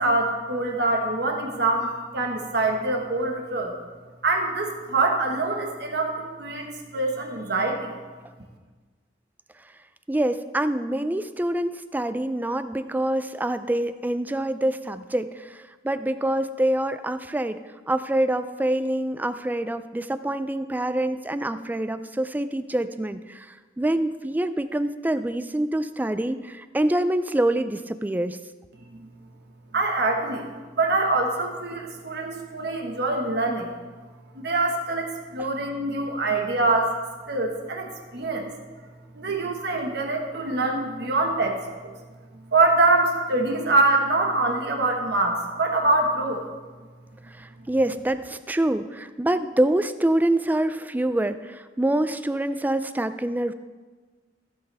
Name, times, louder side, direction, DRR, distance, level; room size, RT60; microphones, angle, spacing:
voice 1, 0.0-3.8 4.2-7.9 28.9-29.1 29.7-30.5 30.8-33.7 34.3-36.9 37.3-38.5 39.1-41.6 41.8-41.9 42.5-46.4, right 2 dB, 65° right, 2 dB, 1.4 m, -24 dB
voice 2, 10.1-17.6 17.9-28.4 47.3-53.5, right 1 dB, 10° right, 12 dB, 0.4 m, -26 dB
15.0 x 7.9 x 3.4 m, 1.4 s
head